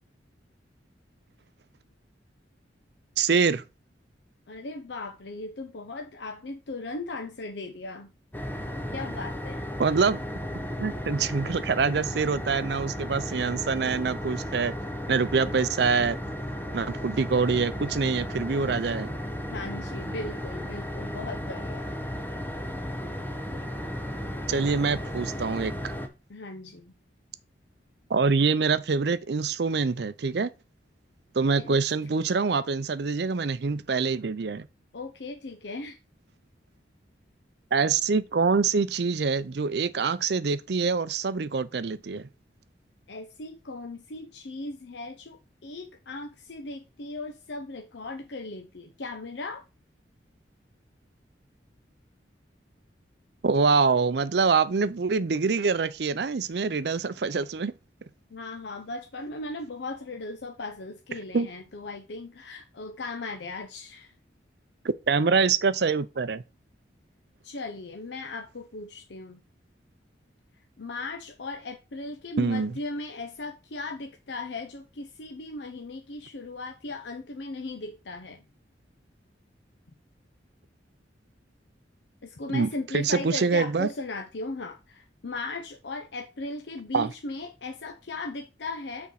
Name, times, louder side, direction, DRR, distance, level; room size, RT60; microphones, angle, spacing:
voice 1, 3.2-3.6 9.8-10.2 10.8-14.7 15.1-16.2 16.7-19.1 24.5-25.9 28.1-30.5 31.3-34.7 37.7-42.3 53.4-57.7 61.3-61.5 65.1-66.4 72.4-72.7 82.5-83.9 86.9-87.1, right 5 dB, 60° right, 0.5 m, -25 dB
voice 2, 4.5-8.1 8.9-9.7 19.5-21.9 26.3-26.9 31.6-31.8 32.2-32.4 34.9-36.0 43.1-49.6 58.3-64.1 67.4-69.4 70.8-78.4 82.2-89.1, left 2 dB, 70° left, 0.7 m, -37 dB
sound 1, 8.3-26.1, equal, 10° left, 0.8 m, -34 dB
6.0 x 4.4 x 5.7 m
head